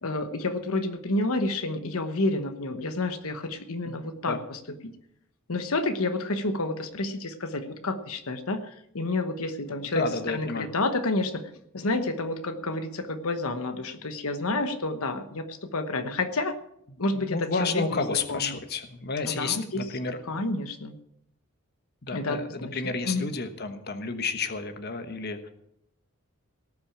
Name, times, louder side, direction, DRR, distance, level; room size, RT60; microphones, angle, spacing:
voice 1, 0.0-4.9 5.5-16.6 17.0-17.5 17.9-18.0 18.3-18.4 19.2-19.8 20.3-20.9 22.1-22.8 23.0-23.3, left 2 dB, 75° left, 8 dB, 1.1 m, -29 dB
voice 2, 3.8-4.4 9.9-10.7 17.1-20.2 22.0-25.5, left 4 dB, 50° left, 8 dB, 1.3 m, -31 dB
18.5 x 6.2 x 8.6 m, 0.77 s
head